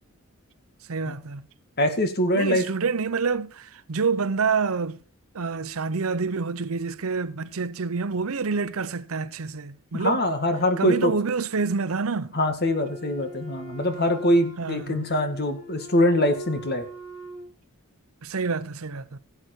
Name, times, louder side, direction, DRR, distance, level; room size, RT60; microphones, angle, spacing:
voice 1, 0.9-1.5 2.3-5.0 5.3-10.2 10.8-12.3 14.6-15.0 18.2-19.2, right 4 dB, 70° right, 0.7 m, -27 dB
voice 2, 1.8-2.6 9.9-11.1 12.3-16.8, left 1 dB, 45° left, 2.0 m, -23 dB
Wind instrument woodwind instrument, 12.6-17.5, equal, 75° left, 5.8 m, -42 dB
17.0 x 7.9 x 4.5 m
head